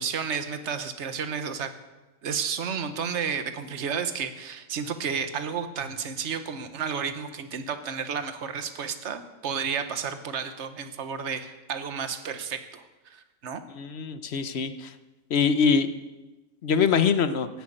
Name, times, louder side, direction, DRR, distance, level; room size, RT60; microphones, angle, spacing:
voice 1, 0.0-1.7 2.2-13.6, right 6 dB, 60° right, 9 dB, 1.3 m, -32 dB
voice 2, 13.7-14.9 15.3-15.9 16.6-17.5, left 6 dB, 55° left, 11 dB, 1.1 m, -23 dB
16.5 x 8.0 x 8.9 m, 1.1 s
omnidirectional pair, 1.4 m